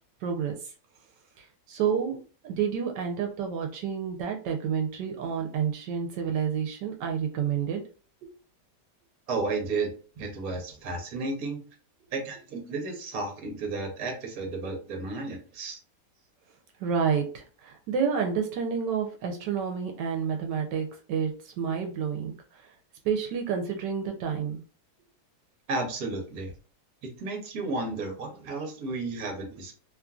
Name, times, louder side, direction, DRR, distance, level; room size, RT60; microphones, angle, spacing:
voice 1, 0.2-0.5 1.7-7.8 16.8-22.3 23.0-24.6, right 7 dB, 85° right, 3 dB, 1.2 m, -29 dB
voice 2, 9.3-9.9 10.2-11.6 12.1-15.8 25.7-26.5 27.2-29.7, right 3 dB, 60° right, 3 dB, 1.2 m, -33 dB
3.0 x 2.5 x 2.3 m, 0.37 s
omnidirectional pair, 1.8 m